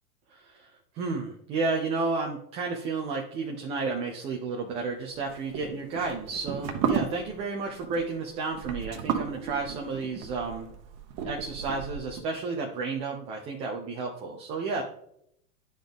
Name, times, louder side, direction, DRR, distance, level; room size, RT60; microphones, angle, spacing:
voice 1, 0.3-10.7 11.2-14.8, right 4 dB, 15° right, 1 dB, 0.3 m, -32 dB
sound 1, 5.2-12.2, right 7 dB, 35° right, 1.0 m, -34 dB
10.0 x 3.9 x 3.4 m, 0.73 s
hypercardioid pair, 115°, 45 cm